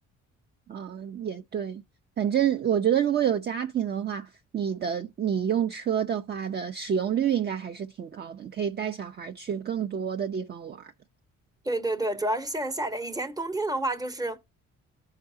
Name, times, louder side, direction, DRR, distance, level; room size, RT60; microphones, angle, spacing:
voice 1, 0.7-1.8 2.2-10.9, right 9 dB, 35° right, 0.5 m, -28 dB
voice 2, 11.6-14.4, right 1 dB, 10° right, 0.8 m, -29 dB
13.5 x 4.8 x 2.7 m
cardioid pair, 90°, 30 cm